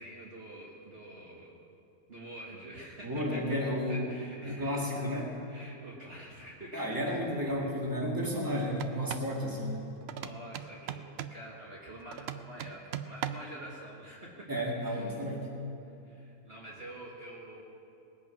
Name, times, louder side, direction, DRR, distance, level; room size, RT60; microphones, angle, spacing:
voice 1, 0.0-1.6 2.1-3.1 3.7-5.0 5.5-7.5 10.1-11.0 11.3-14.5 14.8-15.2 15.8-17.6, right 1 dB, 40° right, -5 dB, 1.8 m, -47 dB
voice 2, 3.0-4.1 4.4-5.3 6.7-9.9 14.5-15.5, equal, 15° right, -3 dB, 2.1 m, -32 dB
sound 1, 8.7-9.3 10.1-11.4 12.1-13.6, right 9 dB, 70° right, 0.6 m, -39 dB
20.0 x 8.4 x 5.9 m, 2.7 s
omnidirectional pair, 1.6 m